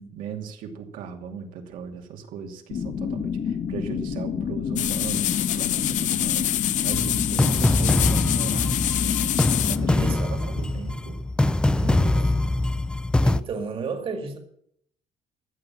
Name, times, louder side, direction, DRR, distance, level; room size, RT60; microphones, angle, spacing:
voice 1, 0.1-9.3 9.7-11.2 11.9-12.4, right 6 dB, 90° right, 3 dB, 2.6 m, -37 dB
sound 1, 2.7-10.1, left 7 dB, 50° left, 1.4 m, -29 dB
sound 2, 4.8-9.8, left 13 dB, 65° left, 0.7 m, -26 dB
sound 3, 6.9-13.4, left 2 dB, 5° left, 0.4 m, -23 dB
voice 2, 7.3-7.8 9.9-10.7 11.7-12.3 13.2-14.4, right 5 dB, 40° right, 5 dB, 1.9 m, -34 dB
14.5 x 7.8 x 8.8 m, 0.70 s
cardioid pair, 160°, 14 cm